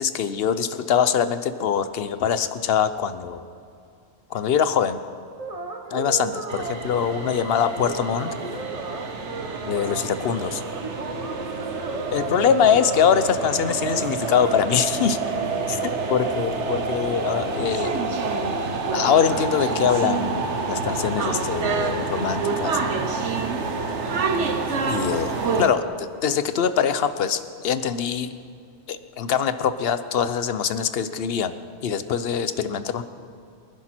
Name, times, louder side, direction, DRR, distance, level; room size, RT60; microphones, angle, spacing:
voice 1, 0.0-3.4 4.3-5.0 5.9-8.3 9.7-10.6 12.1-15.2 15.7-18.0 18.9-20.4 20.7-23.1 24.8-28.3 28.9-31.5 31.8-33.0, left 7 dB, 60° left, 12 dB, 0.9 m, -23 dB
sound 1, 5.4-14.6, right 3 dB, 35° right, 1.3 m, -36 dB
sound 2, 6.5-25.7, right 4 dB, 85° right, 1.4 m, -28 dB
sound 3, 11.0-25.9, left 6 dB, 85° left, 1.1 m, -40 dB
24.0 x 11.0 x 4.4 m, 2.4 s
omnidirectional pair, 1.2 m